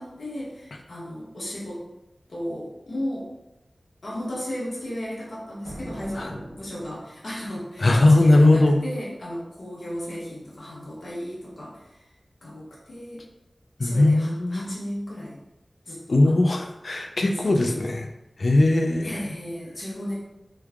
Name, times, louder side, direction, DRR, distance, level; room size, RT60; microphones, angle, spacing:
voice 1, 0.0-1.8 2.3-3.3 4.0-12.1 12.4-13.2 13.8-15.4 15.8-16.6 17.2-17.8 19.0-20.1, equal, 90° left, -7 dB, 1.1 m, -35 dB
sound 1, 5.6-7.4, right 1 dB, 85° right, 0.7 m, -41 dB
voice 2, 7.8-8.8 13.8-14.7 16.1-18.0 18.4-19.3, left 2 dB, 65° left, 3 dB, 0.4 m, -19 dB
3.1 x 2.2 x 3.5 m, 0.93 s
wide cardioid pair, 75°, 0 cm